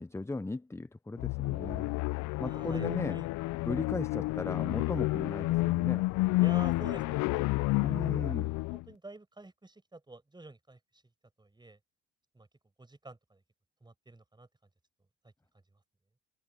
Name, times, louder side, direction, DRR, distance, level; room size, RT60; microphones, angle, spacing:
voice 1, 0.0-1.9 2.4-3.2 3.7-6.1 7.8-8.5, left 2 dB, 10° left, 0.9 m, -37 dB
sound 1, 1.2-8.8, left 21 dB, 65° left, 0.8 m, -30 dB
voice 2, 2.4-3.3 6.4-7.7 8.1-8.4 8.7-11.0 11.4-11.8 12.3-12.5 12.8-13.4 13.8-14.5 15.2-15.3 15.7-15.8, right 2 dB, 15° right, 6.0 m, -49 dB
hypercardioid pair, 75°, 33 cm